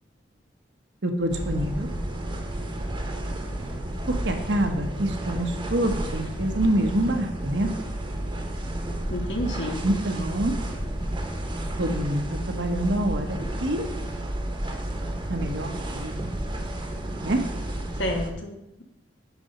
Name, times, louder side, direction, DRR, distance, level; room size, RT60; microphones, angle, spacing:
voice 1, 1.0-1.9 4.1-7.7 9.8-10.6 11.8-13.9 15.3-16.2 17.2-17.4, right 1 dB, 80° right, 4 dB, 1.2 m, -26 dB
sound 1, 1.3-18.3, right 1 dB, 30° right, 1.0 m, -31 dB
voice 2, 9.1-9.8 18.0-18.8, left 1 dB, 90° left, 2 dB, 1.6 m, -30 dB
9.6 x 4.2 x 5.4 m, 0.85 s
head